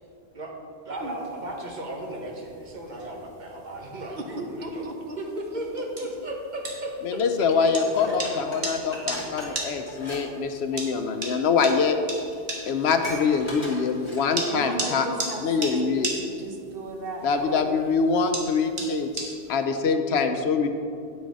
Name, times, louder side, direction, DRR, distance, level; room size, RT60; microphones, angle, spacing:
voice 1, 0.8-4.8 5.2-7.2, right 1 dB, 45° right, -1 dB, 1.3 m, -35 dB
sound 1, 1.0-19.6, right 2 dB, 85° right, 1.6 m, -38 dB
voice 2, 4.1-5.8 8.1-8.2 14.5-17.8, right 2 dB, 65° right, 3 dB, 1.1 m, -36 dB
voice 3, 7.0-12.0 12.7-15.1 15.4-16.1 17.2-20.7, left 5 dB, 85° left, 7 dB, 0.9 m, -24 dB
Dishes pots and pans, 7.8-10.2 10.5-10.8 11.6-11.7 12.0-12.1 12.3-14.5 15.0-15.1, equal, 30° left, 1.6 m, -39 dB
9.1 x 6.4 x 4.7 m, 2.4 s
omnidirectional pair, 1.1 m